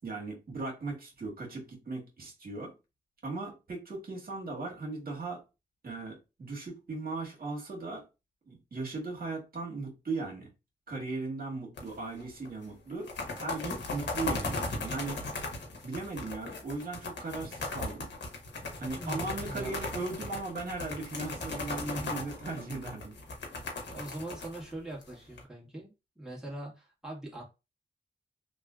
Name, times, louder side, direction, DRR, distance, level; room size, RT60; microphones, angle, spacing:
voice 1, 0.0-2.7 3.2-5.4 5.8-8.0 8.5-10.5 10.9-15.2 15.8-18.1 18.8-23.2, right 3 dB, 55° right, 1.6 m, -38 dB
sound 1, 11.8-12.5 12.9-25.4, left 3 dB, 75° left, 1.1 m, -37 dB
voice 2, 18.9-19.8 23.9-27.4, right 1 dB, 5° right, 1.8 m, -42 dB
3.2 x 2.7 x 2.4 m
cardioid pair, 60°, 18 cm